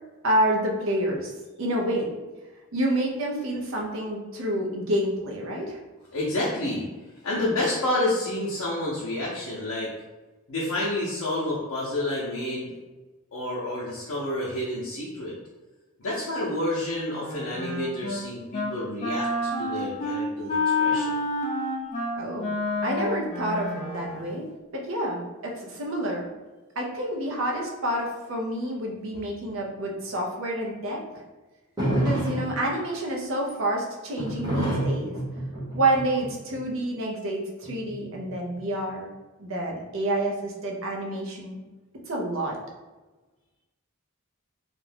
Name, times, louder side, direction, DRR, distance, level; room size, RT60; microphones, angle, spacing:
voice 1, 0.2-1.3 1.6-2.1 2.7-5.8 22.2-22.5 22.8-26.3 26.8-31.2 31.9-35.2 35.7-39.1 39.4-41.6 41.9-42.6, right 1 dB, 60° right, -1 dB, 0.6 m, -28 dB
voice 2, 6.1-6.9 7.2-9.9 10.5-12.7 13.3-15.3 16.0-21.1, left 1 dB, 75° left, -7 dB, 0.6 m, -29 dB
Wind instrument woodwind instrument, 17.1-18.2 18.5-18.7 19.0-24.3, left 2 dB, 30° left, 0.6 m, -28 dB
sound 1, 31.8-32.7 34.2-36.6 37.6-38.6, right 1 dB, 20° right, 0.9 m, -28 dB
2.4 x 2.2 x 3.3 m, 1.2 s
head